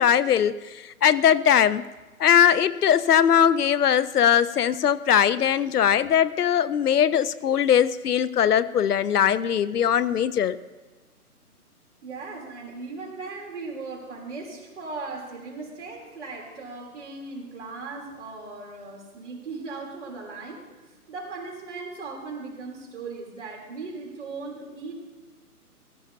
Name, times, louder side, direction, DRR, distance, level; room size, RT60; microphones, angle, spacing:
voice 1, 0.0-1.8 2.2-10.6, left 9 dB, 80° left, 17 dB, 0.7 m, -20 dB
voice 2, 12.0-20.7 21.1-25.0, right 3 dB, 50° right, -1 dB, 3.2 m, -38 dB
16.5 x 14.5 x 2.7 m, 1.2 s
hypercardioid pair, 155°, 46 cm